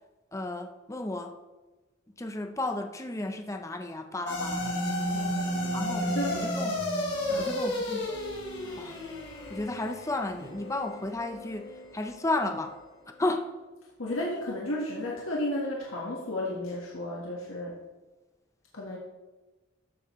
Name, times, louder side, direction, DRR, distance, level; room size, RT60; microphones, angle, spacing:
voice 1, 0.3-1.3 2.2-4.8 5.7-6.8 7.4-8.2 8.8-9.0 9.5-12.8 13.2-13.5, left 2 dB, 15° left, 6 dB, 0.6 m, -33 dB
sound 1, 4.3-12.8, equal, 55° left, 3.4 m, -32 dB
voice 2, 5.0-5.6 6.0-6.3 7.3-7.5 14.0-17.8 18.7-19.0, left 1 dB, 85° left, -3 dB, 1.5 m, -33 dB
13.0 x 7.5 x 3.1 m, 1.2 s
head